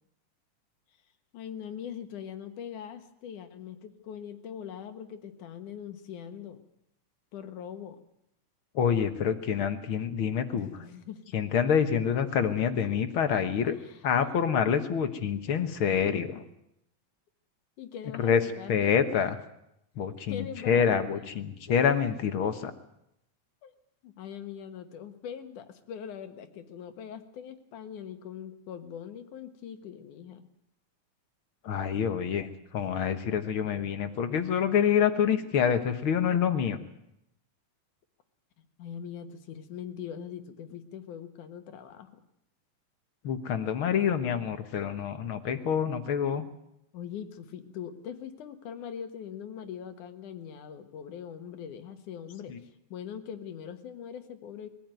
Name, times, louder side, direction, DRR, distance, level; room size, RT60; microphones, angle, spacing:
voice 1, 1.3-6.6 7.3-8.0 10.5-11.5 13.6-14.0 15.9-16.0 17.8-18.8 20.3-21.3 22.6-22.7 23.6-23.7 24.0-30.4 38.8-42.2 46.9-54.7, left 8 dB, 85° left, 8 dB, 3.0 m, -42 dB
voice 2, 8.7-10.7 11.3-13.7 14.0-16.3 18.2-18.4 18.7-19.4 20.0-22.7 31.6-32.5 32.7-36.8 43.2-46.4 52.5-52.6, left 7 dB, 55° left, 9 dB, 1.8 m, -27 dB
22.0 x 15.5 x 9.2 m, 0.80 s
omnidirectional pair, 3.5 m